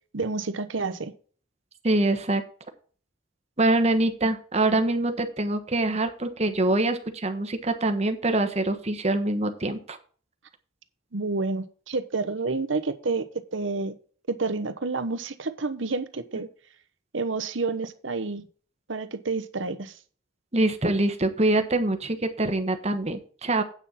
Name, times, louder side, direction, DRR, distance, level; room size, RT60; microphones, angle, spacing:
voice 1, 0.1-1.1 11.1-13.3 13.5-13.9 14.3-16.5 17.1-18.5 18.9-19.9, right 3 dB, 80° right, 11 dB, 1.0 m, -29 dB
voice 2, 1.8-2.4 3.6-10.0 20.5-23.6, right 2 dB, 35° right, 7 dB, 1.2 m, -24 dB
8.9 x 6.3 x 5.6 m, 0.43 s
head